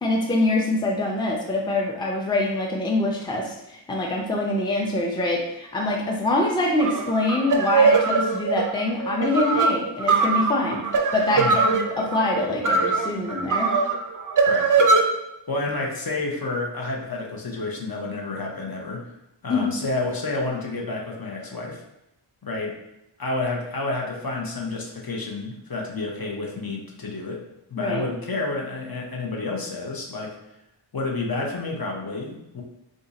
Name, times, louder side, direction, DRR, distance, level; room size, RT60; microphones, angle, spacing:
voice 1, 0.0-10.8 11.1-13.7 19.5-19.7 27.8-28.0, left 2 dB, 10° left, -1 dB, 0.5 m, -24 dB
sound 1, 6.8-15.0, right 4 dB, 45° right, 0.5 m, -21 dB
voice 2, 15.5-19.1 19.4-21.8 22.4-22.7 23.2-27.4 27.7-30.3 30.9-32.6, left 3 dB, 50° left, -1 dB, 0.7 m, -30 dB
2.6 x 2.5 x 3.9 m, 0.85 s
wide cardioid pair, 60°, 46 cm